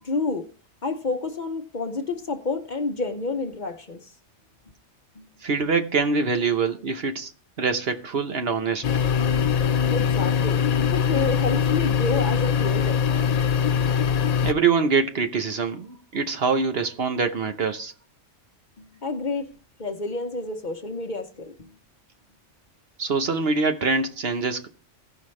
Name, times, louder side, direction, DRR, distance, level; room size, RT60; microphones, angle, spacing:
voice 1, 0.0-0.5 0.8-4.1 5.1-5.3 9.9-10.6 10.9-13.0 18.8-19.5 19.8-21.7, left 3 dB, 45° left, 1.0 m, -29 dB
voice 2, 5.4-7.3 7.6-8.8 14.4-17.9 23.0-24.7, right 4 dB, 55° right, 1.1 m, -24 dB
sound 1, 8.8-14.5, left 7 dB, 70° left, 0.3 m, -22 dB
16.0 x 5.6 x 3.2 m
omnidirectional pair, 1.2 m